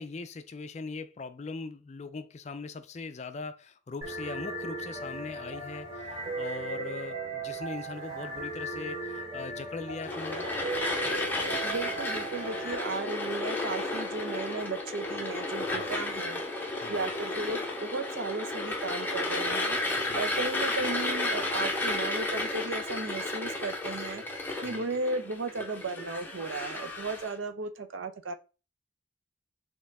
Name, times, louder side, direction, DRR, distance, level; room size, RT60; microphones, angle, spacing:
voice 1, 0.0-10.5 15.7-15.9 16.8-17.0 20.0-20.2 24.6-24.9, left 3 dB, 35° left, 0.4 m, -40 dB
sound 1, 4.0-12.7, right 2 dB, 30° right, 2.1 m, -37 dB
sound 2, 10.0-27.3, left 2 dB, 10° left, 0.8 m, -33 dB
voice 2, 11.6-16.4 16.9-19.8 20.1-24.2 24.6-28.3, right 3 dB, 80° right, 0.6 m, -35 dB
4.4 x 3.0 x 3.5 m
head